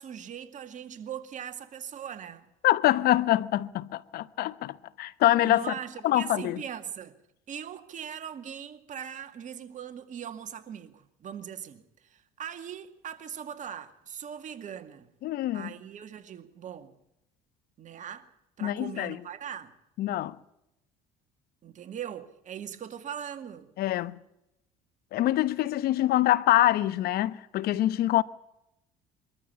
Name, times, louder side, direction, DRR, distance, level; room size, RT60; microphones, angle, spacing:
voice 1, 0.0-2.5 5.4-7.2 7.5-15.1 15.5-16.9 17.8-18.3 18.6-19.7 21.6-23.7, right 9 dB, 50° right, 2.2 m, -40 dB
voice 2, 2.6-5.6 6.0-6.6 15.2-15.7 18.6-19.2 20.0-20.4 23.8-24.2 25.1-28.2, left 14 dB, 65° left, 1.0 m, -25 dB
23.0 x 14.0 x 8.5 m
supercardioid pair, 80°, 17 cm